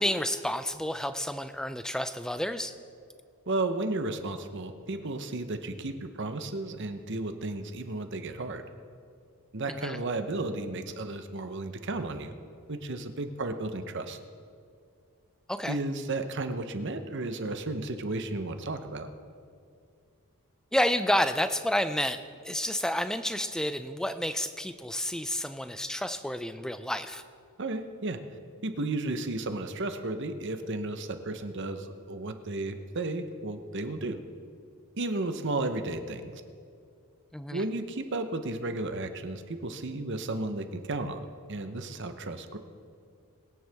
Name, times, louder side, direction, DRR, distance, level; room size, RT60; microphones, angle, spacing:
voice 1, 0.0-2.7 9.7-10.0 15.5-15.8 20.7-27.2 37.3-37.6, left 1 dB, 5° left, 10 dB, 0.4 m, -30 dB
voice 2, 3.5-8.6 9.5-12.3 12.7-14.2 15.7-19.1 27.6-28.2 28.6-34.2 35.0-36.4 37.5-41.2 41.5-42.6, right 2 dB, 55° right, 8 dB, 0.9 m, -33 dB
21.5 x 9.5 x 3.5 m, 2.3 s
head